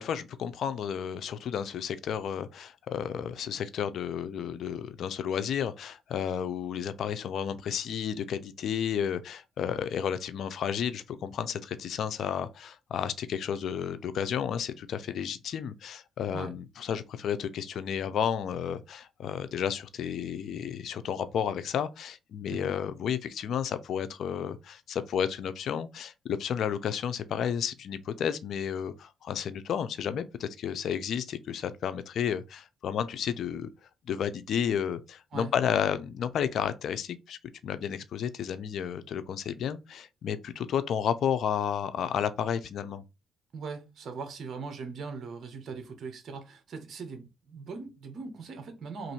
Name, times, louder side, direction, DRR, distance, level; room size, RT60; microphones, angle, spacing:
voice 1, 0.0-33.7 34.1-43.0, left 8 dB, 70° left, 0.5 m, -32 dB
voice 2, 43.5-49.1, right 4 dB, 55° right, 1.0 m, -40 dB
3.1 x 2.6 x 4.4 m
cardioid pair, 90°, 0 cm